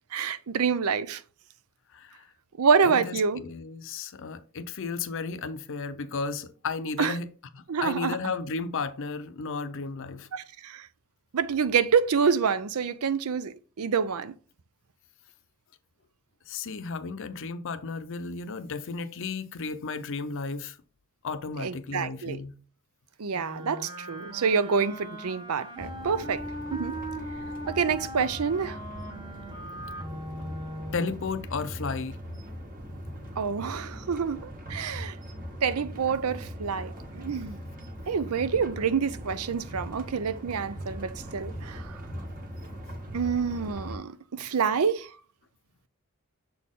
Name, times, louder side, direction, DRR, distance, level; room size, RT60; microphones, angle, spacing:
voice 1, 0.1-1.2 2.6-3.4 7.0-7.2 7.7-8.2 10.3-10.9 11.3-14.3 21.6-22.4 23.2-26.4 26.7-27.0 27.7-28.8 33.4-35.2 35.6-37.6 38.1-42.0 43.1-45.1, right 6 dB, 85° right, 0.5 m, -27 dB
voice 2, 1.9-2.3 2.8-7.3 7.5-10.3 16.5-20.8 21.2-22.6 30.9-32.2, left 4 dB, 65° left, 0.6 m, -34 dB
Wind instrument woodwind instrument, 23.3-31.2, right 1 dB, 20° right, 1.1 m, -39 dB
sound 1, 25.8-44.0, equal, 40° right, 1.5 m, -40 dB
6.9 x 4.2 x 3.6 m
head